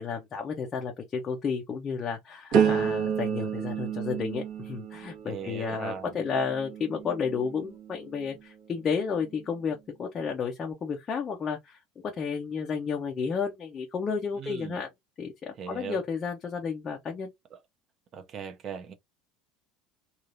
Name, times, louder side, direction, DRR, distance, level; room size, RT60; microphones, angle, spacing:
voice 1, 0.0-11.8 12.0-14.9 15.2-17.3, left 5 dB, 20° left, 0.5 m, -32 dB
sound 1, 2.5-8.4 8.9-9.3, right 8 dB, 50° right, 1.2 m, -31 dB
voice 2, 5.3-6.1 14.4-14.8 15.6-16.0 17.5-17.6 18.1-18.9, right 7 dB, 25° right, 0.6 m, -39 dB
3.2 x 2.4 x 2.5 m
cardioid pair, 180°, 0 cm